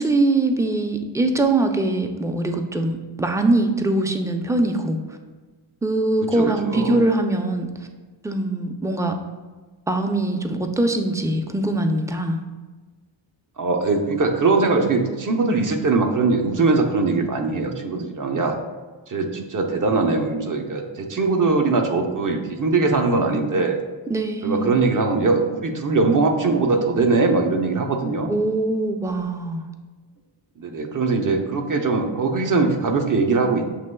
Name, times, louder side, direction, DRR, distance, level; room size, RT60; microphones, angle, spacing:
voice 1, 0.0-5.0 5.8-7.7 8.2-9.1 9.9-12.4 24.1-24.7 28.3-29.6, right 2 dB, 5° right, 5 dB, 0.4 m, -22 dB
voice 2, 6.4-7.0 13.6-18.6 19.1-23.8 24.4-28.3 30.6-33.7, right 3 dB, 40° right, 3 dB, 0.7 m, -21 dB
6.6 x 3.0 x 2.2 m, 1.3 s
cardioid pair, 50°, 49 cm